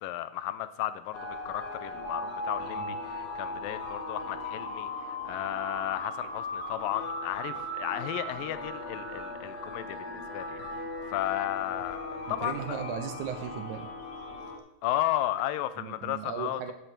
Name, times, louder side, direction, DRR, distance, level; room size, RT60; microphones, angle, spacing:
voice 1, 0.0-12.8 14.8-16.7, left 13 dB, 85° left, 2.4 m, -34 dB
sound 1, 1.1-14.6, left 1 dB, 60° left, 3.4 m, -38 dB
voice 2, 12.3-13.9 15.8-16.7, right 8 dB, 70° right, 2.1 m, -37 dB
11.0 x 8.0 x 6.1 m
omnidirectional pair, 4.0 m